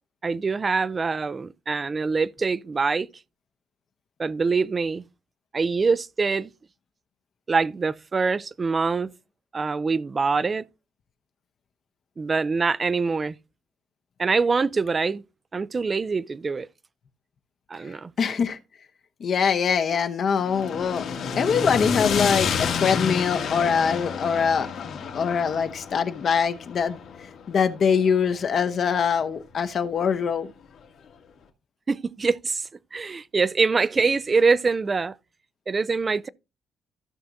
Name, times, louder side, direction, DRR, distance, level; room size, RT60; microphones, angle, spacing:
voice 1, 0.2-3.1 4.2-5.0 5.5-6.5 7.5-9.1 9.5-10.6 12.2-13.3 14.2-15.2 15.5-16.7 17.7-18.1 31.9-32.6 32.9-35.2 35.7-36.3, right 4 dB, 30° right, 0.4 m, -24 dB
voice 2, 18.2-18.6 19.2-21.0 21.4-27.0 27.5-30.5, left 6 dB, 50° left, 0.9 m, -23 dB
sound 1, 20.4-28.6, left 6 dB, 65° left, 2.0 m, -29 dB
14.5 x 5.9 x 2.6 m
cardioid pair, 110°, 0 cm